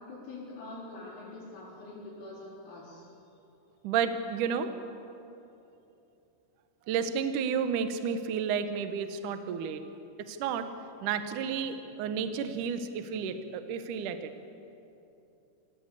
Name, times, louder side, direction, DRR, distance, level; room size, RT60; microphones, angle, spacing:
voice 1, 0.0-3.1, left 2 dB, 80° left, -9 dB, 6.9 m, -44 dB
voice 2, 3.8-4.7 6.9-9.8 10.2-10.7 11.0-14.3, right 7 dB, 80° right, 9 dB, 1.8 m, -31 dB
28.0 x 16.5 x 8.5 m, 2.8 s
omnidirectional pair, 5.5 m